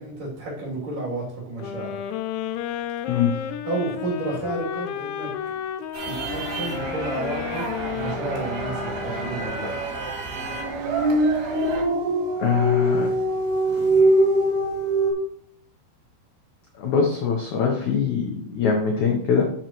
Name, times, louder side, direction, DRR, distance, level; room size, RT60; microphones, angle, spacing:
voice 1, 0.0-2.0 3.7-5.3 6.0-9.8, right 2 dB, 55° right, -5 dB, 4.3 m, -31 dB
sound 1, 1.6-9.8, left 9 dB, 90° left, 2.7 m, -32 dB
voice 2, 3.1-3.5 12.4-13.1 16.8-19.4, left 6 dB, 75° left, 1 dB, 1.7 m, -22 dB
sound 2, 5.9-11.8, right 4 dB, 75° right, 3.6 m, -32 dB
sound 3, 10.3-15.1, right 1 dB, 40° right, 4.3 m, -22 dB
11.5 x 5.7 x 3.0 m, 0.64 s
omnidirectional pair, 4.7 m